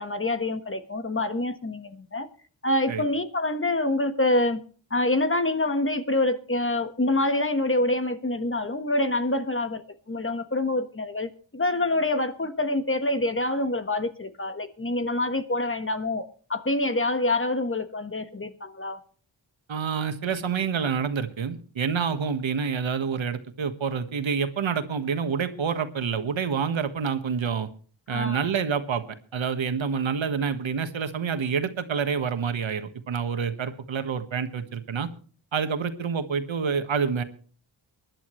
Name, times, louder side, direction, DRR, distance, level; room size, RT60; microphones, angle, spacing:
voice 1, 0.0-2.3 2.6-4.6 4.9-9.8 10.1-16.2 16.5-19.0 28.1-28.5, left 2 dB, 25° left, 1.4 m, -26 dB
voice 2, 19.7-27.7 28.1-29.0 29.3-35.1 35.5-37.2, right 6 dB, 80° right, 1.5 m, -27 dB
24.5 x 11.0 x 3.2 m
wide cardioid pair, 100°, 46 cm